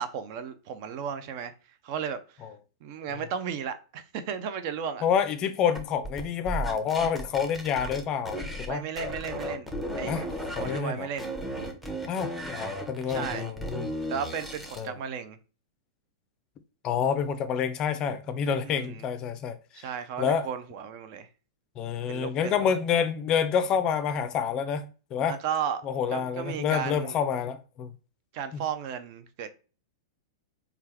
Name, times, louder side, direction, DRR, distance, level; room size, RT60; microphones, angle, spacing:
voice 1, 0.0-1.5 1.8-2.2 2.8-5.0 8.7-9.7 10.0-10.3 10.6-11.3 13.1-13.5 14.1-15.4 18.6-19.0 19.8-21.3 22.1-22.6 25.3-25.8 26.1-27.2 28.3-29.5, right 7 dB, 45° right, 0.4 m, -34 dB
voice 2, 5.0-8.9 10.1-10.2 10.6-11.1 12.0-13.9 14.8-14.9 16.8-19.9 20.2-20.5 21.8-25.4 25.8-27.9 28.5-28.6, left 7 dB, 35° left, 0.4 m, -28 dB
sound 1, 5.7-8.7 9.0-10.8 11.2-14.9, equal, 5° right, 0.7 m, -35 dB
3.3 x 2.4 x 3.3 m
figure-of-eight pair, 100°, 2 cm